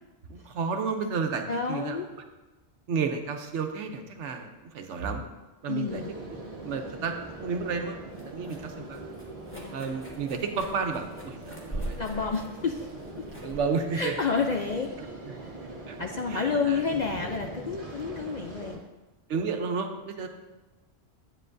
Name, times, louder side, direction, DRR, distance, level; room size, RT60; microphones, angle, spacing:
voice 1, 0.3-2.0 2.9-5.3 5.6-6.0 6.6-9.0 9.7-12.0 13.4-14.1 15.9-16.0 16.3-16.8 19.3-20.3, right 5 dB, 75° right, 5 dB, 1.1 m, -32 dB
voice 2, 1.5-2.1 5.7-6.1 9.5-9.9 12.0-12.9 13.2-13.3 13.9-14.9 15.4-15.5 16.0-18.8, left 5 dB, 55° left, 3 dB, 0.5 m, -30 dB
sound 1, 5.9-18.8, right 2 dB, 30° right, 1.2 m, -42 dB
sound 2, 8.0-15.1, right 1 dB, 10° left, 1.3 m, -43 dB
9.8 x 8.3 x 2.6 m, 1.1 s
omnidirectional pair, 1.3 m